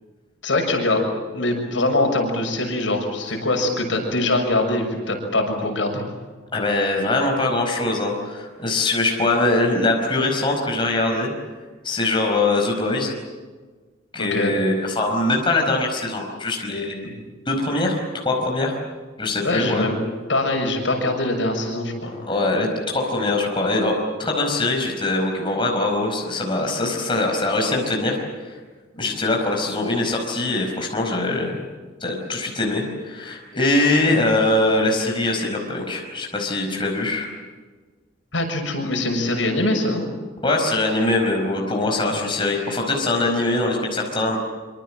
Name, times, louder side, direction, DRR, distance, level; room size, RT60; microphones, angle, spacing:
voice 1, 0.4-1.1 1.3-6.0 14.2-14.5 17.0-17.1 19.4-20.0 20.3-22.1 38.3-40.1 42.0-42.1, left 2 dB, 75° left, 3 dB, 6.7 m, -23 dB
voice 2, 6.5-11.3 11.8-13.1 14.1-17.0 17.5-18.0 18.2-18.8 19.2-19.9 22.2-28.2 28.9-31.6 32.0-37.3 40.4-44.4, left 2 dB, 25° left, 1 dB, 4.9 m, -22 dB
26.0 x 25.5 x 7.6 m, 1.4 s
head